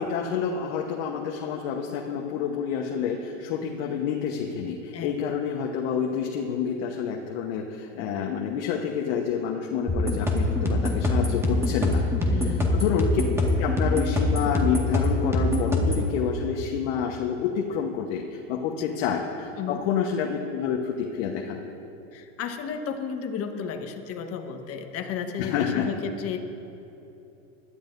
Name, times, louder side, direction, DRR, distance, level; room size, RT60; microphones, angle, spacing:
voice 1, 0.0-12.0 12.3-13.1 13.6-21.6 25.4-25.9, left 7 dB, 60° left, 1 dB, 1.2 m, -28 dB
voice 2, 4.9-5.4 12.3-12.8 18.7-18.9 19.6-19.8 22.1-26.4, left 6 dB, 35° left, 5 dB, 1.3 m, -33 dB
sound 1, 9.9-16.1, left 1 dB, 5° right, 1.7 m, -24 dB
20.5 x 13.0 x 2.7 m, 2.9 s
supercardioid pair, 120°, 39 cm